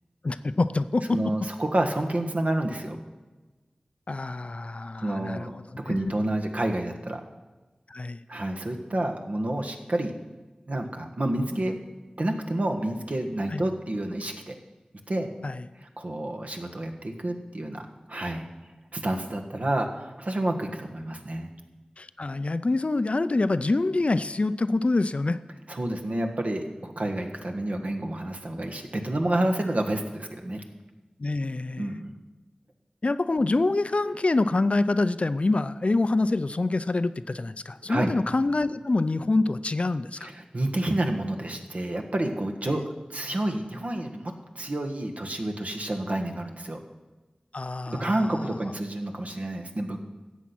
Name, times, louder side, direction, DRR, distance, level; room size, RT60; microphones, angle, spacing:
voice 1, 0.2-1.2 4.1-5.5 5.9-6.0 7.9-8.2 13.5-13.6 15.4-15.7 22.0-25.4 31.2-31.9 33.0-40.3 42.7-42.8 47.5-48.4, left 2 dB, 50° left, 13 dB, 0.5 m, -26 dB
voice 2, 1.1-3.0 5.0-5.5 5.8-7.2 8.3-10.1 10.7-11.8 12.2-14.6 15.1-15.3 15.8-18.5 18.9-21.5 25.7-30.6 31.8-32.1 37.9-38.1 40.2-46.8 47.9-50.0, right 1 dB, 60° right, 3 dB, 1.5 m, -29 dB
13.5 x 8.3 x 6.0 m, 1.2 s
wide cardioid pair, 65°, 3 cm